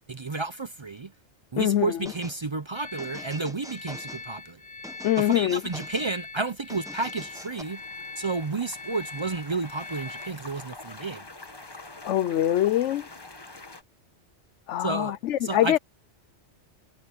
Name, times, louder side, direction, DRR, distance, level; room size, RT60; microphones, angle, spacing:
voice 1, 0.1-1.1 1.5-4.6 5.2-7.8 8.2-11.3 14.8-15.8, right 3 dB, 35° right, 0.4 m, -31 dB
sound 1, 2.1-2.4 3.0-4.3 4.8-6.1 6.7-7.6, equal, 5° right, 1.0 m, -45 dB
sound 2, 2.7-10.3, left 3 dB, 50° left, 1.5 m, -42 dB
voice 2, 5.0-5.6 12.0-13.0 14.7-15.8, left 12 dB, 80° left, 0.9 m, -23 dB
sound 3, 7.2-13.8, left 2 dB, 20° left, 1.3 m, -46 dB
omnidirectional pair, 1.2 m